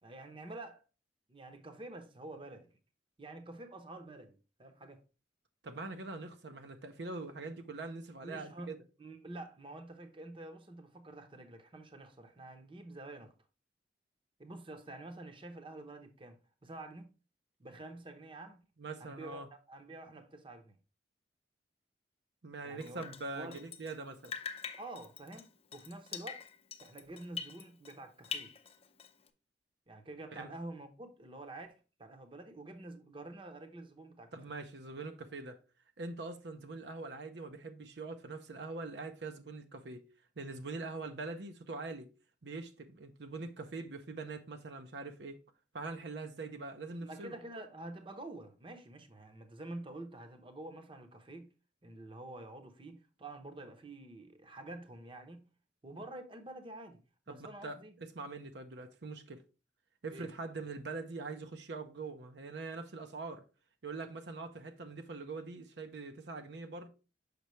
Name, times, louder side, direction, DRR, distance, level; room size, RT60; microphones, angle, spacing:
voice 1, 0.0-0.8 1.3-2.8 3.2-5.0 8.2-13.3 14.4-17.1 17.6-18.6 19.0-20.7 22.6-23.1 23.3-23.6 24.8-26.4 26.8-28.5 29.9-34.4 47.0-51.5 51.8-55.5 55.8-57.0 57.3-57.9 60.1-60.3, right 2 dB, 30° right, 0.8 m, -48 dB
voice 2, 5.6-8.8 18.8-19.5 22.4-24.3 30.3-30.5 34.3-35.6 36.0-40.1 40.4-42.1 42.4-45.4 45.7-47.4 57.3-57.8 58.2-59.4 60.0-63.4 63.8-66.9, right 3 dB, 75° right, 0.7 m, -43 dB
Drip, 22.8-24.0 24.2-28.0 28.2-29.3, left 6 dB, 35° left, 0.6 m, -44 dB
6.7 x 5.6 x 3.1 m
head